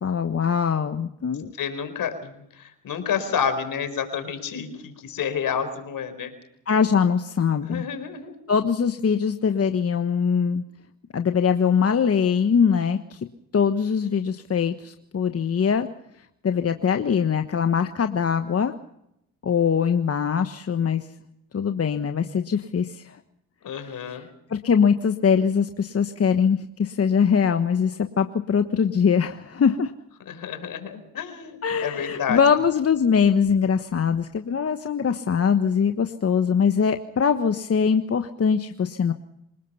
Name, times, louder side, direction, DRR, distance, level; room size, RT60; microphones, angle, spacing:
voice 1, 0.0-1.5 6.7-7.9 8.5-10.6 11.1-13.2 13.5-15.9 16.4-18.7 19.4-21.1 21.5-23.2 24.0-24.2 24.5-29.9 31.6-39.1, left 6 dB, 40° left, 7 dB, 1.3 m, -22 dB
voice 2, 1.6-6.3 7.6-8.4 23.6-24.3 30.3-32.4, left 7 dB, 70° left, 8 dB, 4.8 m, -29 dB
27.0 x 19.0 x 5.7 m, 0.79 s
supercardioid pair, 70°, 35 cm